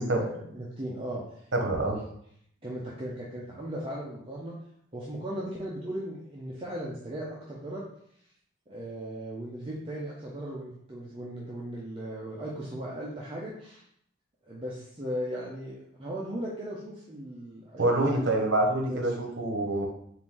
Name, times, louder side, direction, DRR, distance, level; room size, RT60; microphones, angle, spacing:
voice 1, 0.0-1.5 1.9-2.1 2.6-4.6 4.9-7.8 8.7-13.8 14.5-18.2 18.9-19.0, right 1 dB, 25° right, -5 dB, 0.6 m, -37 dB
voice 2, 1.5-2.0 17.8-19.9, right 2 dB, 65° right, 1 dB, 0.9 m, -26 dB
4.4 x 2.6 x 3.6 m, 0.68 s
head